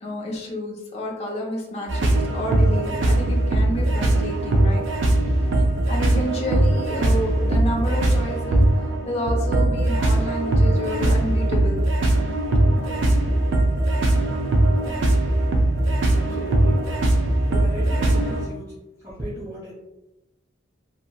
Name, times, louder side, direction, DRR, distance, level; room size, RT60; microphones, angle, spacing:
voice 1, 0.0-4.8 5.9-8.6 9.1-11.8, equal, 30° left, -2 dB, 0.6 m, -30 dB
sound 1, 1.9-18.5, right 1 dB, 70° right, 0.4 m, -20 dB
voice 2, 16.1-16.8 17.5-18.7 19.0-19.7, right 1 dB, 15° right, -8 dB, 0.6 m, -36 dB
2.8 x 2.8 x 2.2 m, 0.98 s
head